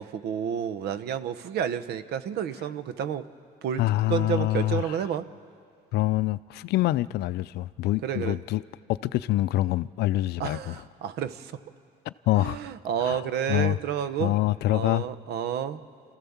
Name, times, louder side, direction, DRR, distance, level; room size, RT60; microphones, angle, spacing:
voice 1, 0.0-3.3 3.6-3.8 4.1-5.3 8.0-8.4 10.4-11.5 12.4-14.3 14.7-15.8, right 9 dB, 75° right, 13 dB, 0.9 m, -30 dB
voice 2, 3.8-5.0 5.9-8.6 9.0-10.8 12.1-12.6 13.0-13.2 13.5-13.8 14.2-15.0, left 16 dB, 75° left, 17 dB, 0.4 m, -25 dB
27.5 x 14.5 x 7.2 m, 2.3 s
cardioid pair, 110°, 17 cm